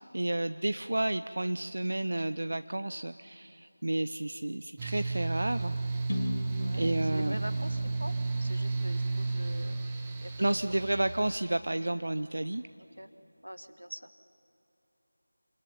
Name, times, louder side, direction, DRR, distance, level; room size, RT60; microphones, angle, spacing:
voice 1, 0.1-5.7 6.7-7.4 10.4-12.6, right 1 dB, 50° right, 11 dB, 0.5 m, -31 dB
Mechanical fan, 4.8-11.2, right 3 dB, 10° right, 1.3 m, -33 dB
sound 1, 6.1-10.0, left 1 dB, 45° left, 2.2 m, -39 dB
voice 2, 6.6-9.8 10.2-10.7 12.8-13.1 13.4-14.1, equal, 85° right, 9 dB, 1.6 m, -44 dB
26.0 x 19.5 x 9.9 m, 2.8 s
figure-of-eight pair, 170°, 0 cm